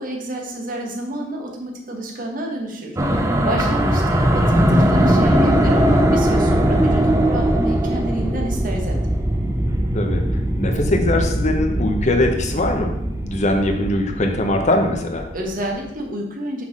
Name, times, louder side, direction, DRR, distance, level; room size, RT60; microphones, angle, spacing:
voice 1, 0.0-9.0 15.3-16.7, right 1 dB, 50° right, 1 dB, 1.3 m, -29 dB
sound 1, 3.0-15.5, equal, 15° right, 0.7 m, -20 dB
voice 2, 3.4-4.1 9.9-10.2 10.6-12.9 13.2-15.2, left 1 dB, 40° left, 4 dB, 1.0 m, -21 dB
6.1 x 3.8 x 6.1 m, 0.83 s
head